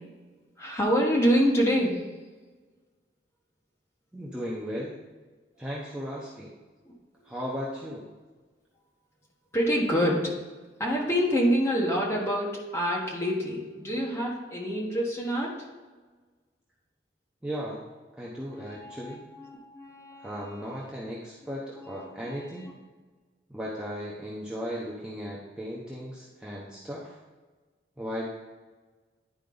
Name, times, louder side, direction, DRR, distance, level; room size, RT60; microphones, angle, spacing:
voice 1, 0.6-2.0 9.5-10.3 10.8-15.7 18.5-20.7 21.8-22.5, equal, 15° left, -3 dB, 1.3 m, -27 dB
voice 2, 4.1-5.0 5.6-6.5 7.2-8.1 17.4-17.8 18.2-19.3 20.2-22.7 23.5-27.2 28.0-28.3, equal, 5° right, -7 dB, 0.8 m, -36 dB
10.5 x 4.5 x 3.9 m, 1.3 s
head